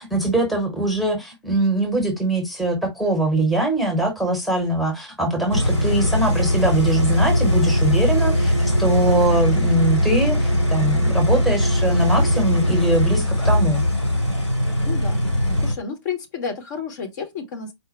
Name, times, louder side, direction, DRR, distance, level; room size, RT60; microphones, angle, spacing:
voice 1, 0.0-13.8, right 1 dB, ahead, 1.0 m, -22 dB
sound 1, 5.5-15.7, left 1 dB, 85° left, 1.8 m, -20 dB
voice 2, 14.8-15.2 15.6-17.7, left 6 dB, 40° left, 0.9 m, -31 dB
4.3 x 2.1 x 4.1 m
figure-of-eight pair, 120°, 15 cm